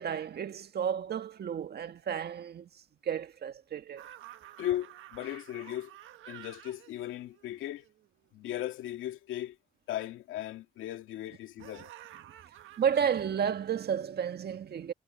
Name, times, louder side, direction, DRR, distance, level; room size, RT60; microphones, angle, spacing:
voice 1, 0.0-4.1 12.8-14.9, right 8 dB, 55° right, 1.7 m, -32 dB
sound 1, 4.0-8.3 11.6-13.2, right 13 dB, 80° right, 1.4 m, -51 dB
voice 2, 4.6-5.9 6.3-7.8 8.3-9.6 9.9-11.9, left 13 dB, 90° left, 2.2 m, -37 dB
cardioid pair, 90°, 20 cm